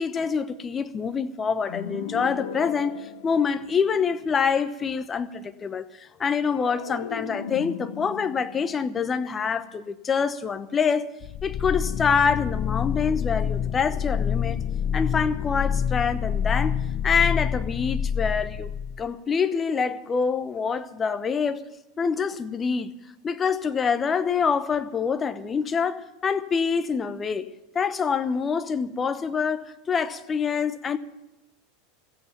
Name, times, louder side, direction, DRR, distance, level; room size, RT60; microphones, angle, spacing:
voice 1, 0.0-11.1 11.4-14.6 14.9-16.8 17.0-18.7 19.0-21.6 22.0-22.9 23.2-27.5 27.7-31.0, left 6 dB, 25° left, 0.9 m, -26 dB
sound 1, 1.7-4.1 6.5-9.8, left 8 dB, 70° left, 1.0 m, -38 dB
sound 2, 11.2-19.1, left 8 dB, 45° left, 0.5 m, -27 dB
15.0 x 8.3 x 10.0 m
figure-of-eight pair, 85°, 0 cm